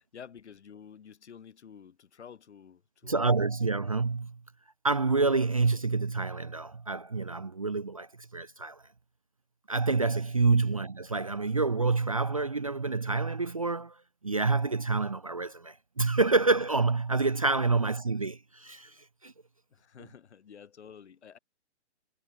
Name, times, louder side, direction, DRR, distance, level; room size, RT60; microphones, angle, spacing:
voice 1, 0.0-3.4 10.7-10.8 19.7-21.4, left 7 dB, 70° left, 2.0 m, -50 dB
voice 2, 3.0-4.4 4.8-8.8 9.7-14.0 14.2-18.9 19.2-19.3, right 3 dB, 30° right, 0.4 m, -27 dB
hypercardioid pair, 175°, 35 cm